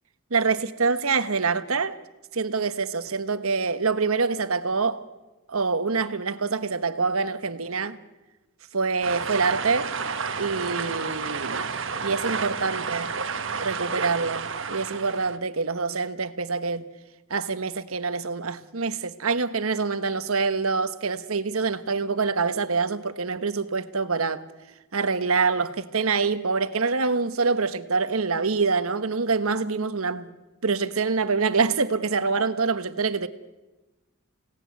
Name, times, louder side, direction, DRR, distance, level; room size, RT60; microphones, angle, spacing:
voice 1, 0.3-2.0 2.3-5.0 5.5-8.0 8.7-9.9 10.4-11.7 12.0-13.1 13.6-16.9 17.3-24.4 24.9-30.3 30.6-33.3, right 4 dB, 80° right, 1.3 m, -25 dB
sound 1, 9.0-15.4, right 5 dB, 60° right, 1.4 m, -31 dB
29.5 x 18.0 x 9.4 m
head